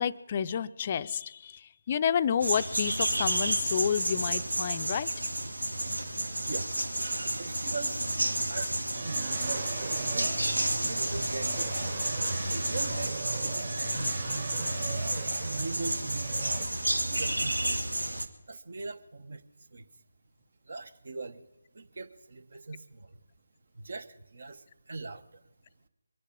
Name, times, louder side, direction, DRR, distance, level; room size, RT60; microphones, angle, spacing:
voice 1, 0.0-5.1, left 8 dB, 30° left, 12 dB, 0.5 m, -30 dB
sound 1, 2.4-18.3, right 1 dB, 85° right, 1.5 m, -31 dB
voice 2, 7.4-8.1 8.5-8.7 9.0-10.4 10.8-11.8 12.5-14.4 15.5-16.4 17.1-17.9 18.5-19.4 19.7-19.9 20.6-21.5 21.7-23.2 23.7-25.4, right 3 dB, 55° right, 14 dB, 1.1 m, -41 dB
sound 2, 8.9-16.7, right 5 dB, 35° right, 0.6 m, -40 dB
23.5 x 10.0 x 5.3 m, 1.1 s
figure-of-eight pair, 155°, 0 cm